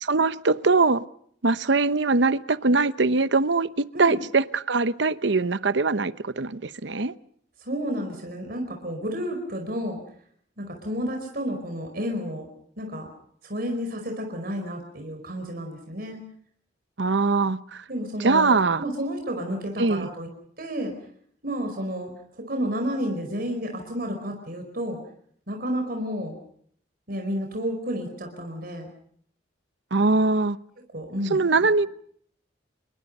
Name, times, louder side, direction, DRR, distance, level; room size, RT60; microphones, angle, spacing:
voice 1, 0.0-1.0 1.4-7.1 17.0-17.8 18.2-18.8 19.8-20.1 29.9-30.6 31.3-31.9, right 3 dB, 75° right, 15 dB, 0.9 m, -22 dB
voice 2, 7.6-10.0 10.6-12.5 12.8-13.1 13.4-16.2 17.9-20.3 20.6-20.9 21.4-22.1 22.4-25.0 25.5-26.4 27.1-28.9 30.9-31.9, equal, 55° right, 3 dB, 4.9 m, -31 dB
28.5 x 22.5 x 5.5 m, 0.64 s
head